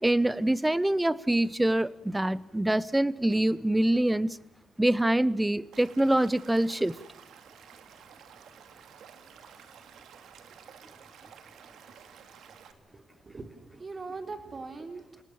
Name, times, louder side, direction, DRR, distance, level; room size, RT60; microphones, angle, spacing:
voice 1, 0.0-4.4 4.8-7.0, right 1 dB, 10° right, 20 dB, 0.8 m, -25 dB
Stream / Liquid, 5.7-12.7, right 8 dB, 70° right, 2.3 m, -52 dB
voice 2, 12.9-15.2, right 3 dB, 30° right, 8 dB, 3.7 m, -41 dB
29.0 x 18.5 x 7.2 m, 0.82 s
cardioid pair, 90°, 0 cm